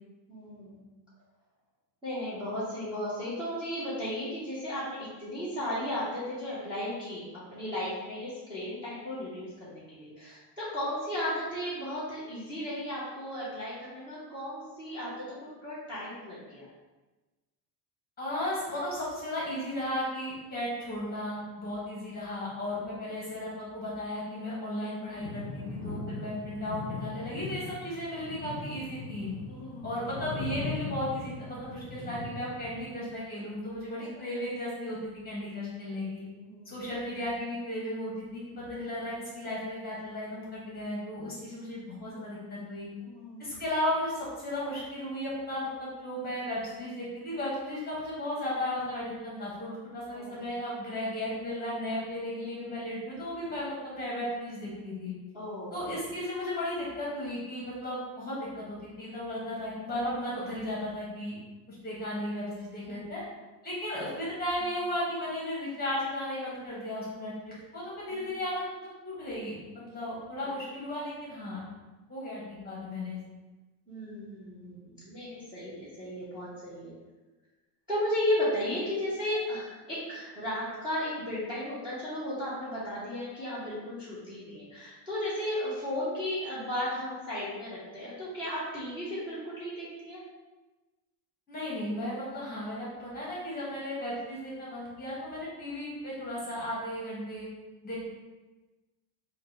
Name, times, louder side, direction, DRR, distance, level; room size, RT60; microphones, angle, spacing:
voice 1, 0.3-0.8 2.0-7.2 7.5-16.7 26.0-26.1 29.5-29.9 34.0-34.1 36.4-36.8 42.1-42.3 43.0-43.5 50.1-50.5 52.5-52.6 55.3-55.8 62.8-63.1 68.1-68.4 70.4-70.5 73.9-76.9 77.9-90.2, left 1 dB, 10° right, -12 dB, 1.0 m, -35 dB
voice 2, 18.2-29.3 29.8-35.0 35.2-36.3 36.7-38.4 38.7-42.9 43.4-55.1 55.7-61.4 61.7-63.2 63.6-71.6 72.1-73.2 91.5-97.5 97.8-98.0, left 1 dB, 20° left, -6 dB, 1.3 m, -35 dB
sound 1, 25.2-32.8, left 3 dB, 50° left, 0.6 m, -39 dB
4.0 x 2.5 x 3.5 m, 1.2 s
cardioid pair, 155°, 50 cm